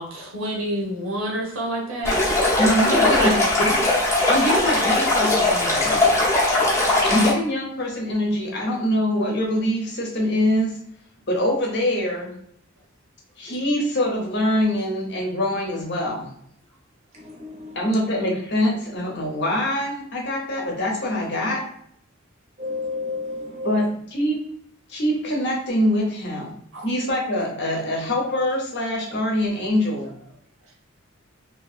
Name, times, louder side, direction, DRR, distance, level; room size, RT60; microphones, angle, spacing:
voice 1, 0.0-2.2 2.9-3.3 26.7-26.8, right 1 dB, 75° right, -2 dB, 0.9 m, -27 dB
Stream, 2.0-7.3, left 2 dB, 15° left, 0.7 m, -20 dB
voice 2, 2.6-3.8 4.3-6.0 7.0-10.7 11.3-12.3 13.4-16.3 17.7-21.6 23.6-24.4 24.9-26.6 26.8-30.1, left 1 dB, 50° left, -1 dB, 0.8 m, -24 dB
voice 3, 22.6-23.7, left 3 dB, 30° right, -2 dB, 0.7 m, -30 dB
2.7 x 2.7 x 2.4 m, 0.68 s
head